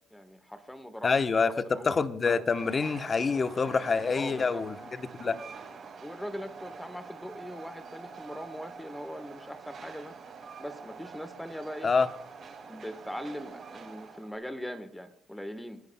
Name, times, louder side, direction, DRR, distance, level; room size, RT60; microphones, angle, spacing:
voice 1, 0.1-2.0 4.2-4.7 6.0-10.1 10.6-11.9 12.7-15.8, equal, 5° left, 10 dB, 1.2 m, -41 dB
voice 2, 1.0-5.4 11.8-12.1, left 4 dB, 40° left, 11 dB, 0.9 m, -27 dB
Train, 2.4-14.4, right 5 dB, 50° right, 4.5 m, -46 dB
26.5 x 10.5 x 2.2 m, 0.69 s
supercardioid pair, 70°, 0 cm